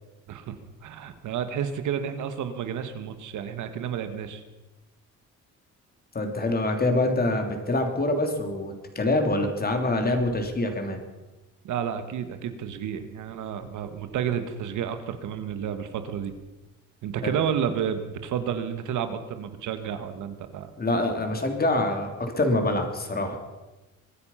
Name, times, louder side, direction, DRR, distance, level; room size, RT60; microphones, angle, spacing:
voice 1, 0.8-4.4 11.6-16.3 17.0-20.7, right 8 dB, 80° right, 9 dB, 1.5 m, -31 dB
voice 2, 6.1-11.0 17.2-17.4 20.8-23.4, left 2 dB, 30° left, 4 dB, 3.1 m, -25 dB
23.5 x 9.9 x 5.7 m, 1.1 s
cardioid pair, 90°, 30 cm